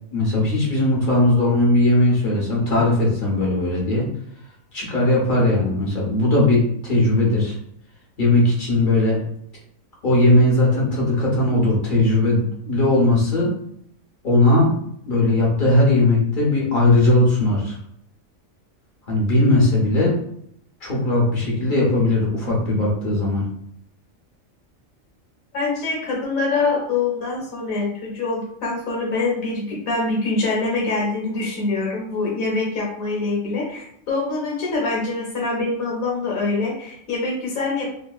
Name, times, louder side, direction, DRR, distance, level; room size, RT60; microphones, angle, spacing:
voice 1, 0.1-4.1 4.7-7.5 8.2-9.2 10.0-13.5 14.2-14.7 15.0-17.7 19.1-20.1 20.8-23.4, left 2 dB, 40° left, -3 dB, 1.0 m, -18 dB
voice 2, 25.5-37.9, left 3 dB, 80° left, -3 dB, 1.3 m, -24 dB
2.8 x 2.6 x 2.3 m, 0.69 s
omnidirectional pair, 1.4 m